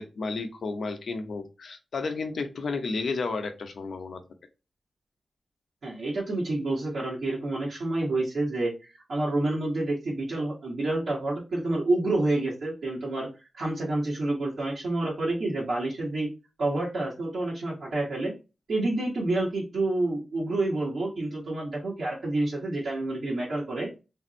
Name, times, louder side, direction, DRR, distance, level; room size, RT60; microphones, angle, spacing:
voice 1, 0.0-4.2, left 4 dB, 80° left, 6 dB, 0.8 m, -32 dB
voice 2, 5.8-13.3 13.5-16.3 16.6-18.3 18.7-23.9, right 2 dB, 75° right, -6 dB, 1.6 m, -28 dB
3.5 x 2.6 x 4.2 m, 0.29 s
cardioid pair, 70°, 0 cm